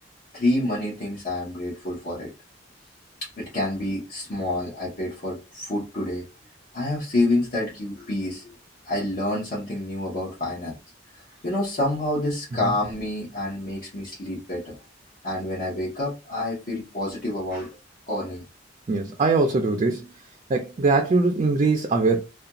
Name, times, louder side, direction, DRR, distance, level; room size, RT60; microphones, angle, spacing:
voice 1, 0.3-2.3 3.4-6.2 6.7-8.5 8.8-10.7 11.4-14.8 15.2-17.7 18.1-18.4, left 1 dB, 50° left, 0.8 m, -28 dB
voice 2, 18.9-20.0 20.5-22.2, right 3 dB, 35° right, 0.3 m, -21 dB
2.4 x 2.2 x 2.8 m
head